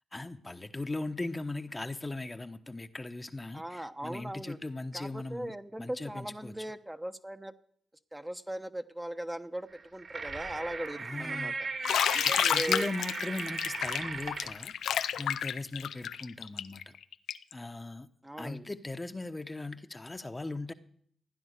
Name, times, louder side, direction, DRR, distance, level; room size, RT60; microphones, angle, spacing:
voice 1, 0.1-5.5 5.8-6.5 11.0-11.6 12.2-14.7 15.2-17.0 17.5-18.1 18.4-20.7, left 2 dB, 25° left, 8 dB, 1.1 m, -39 dB
voice 2, 3.5-4.6 4.9-7.5 8.1-11.5 12.1-12.8 18.2-18.7, right 1 dB, 15° right, 8 dB, 1.0 m, -39 dB
sound 1, 9.7-14.6, right 4 dB, 60° right, 3.3 m, -37 dB
Bathtub (filling or washing), 11.8-17.5, left 9 dB, 80° left, 0.5 m, -30 dB
15.5 x 9.9 x 6.7 m, 0.66 s
supercardioid pair, 40°, 0 cm